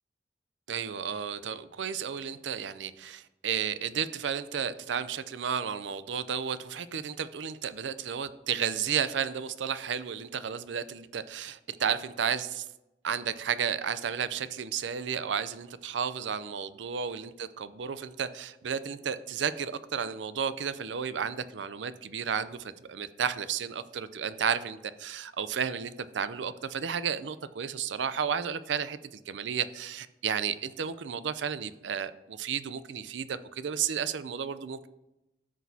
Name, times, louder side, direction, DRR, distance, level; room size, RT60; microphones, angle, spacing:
voice 1, 0.7-12.6 13.0-34.9, right 7 dB, 85° right, 14 dB, 0.5 m, -33 dB
13.5 x 6.1 x 2.8 m, 0.93 s
head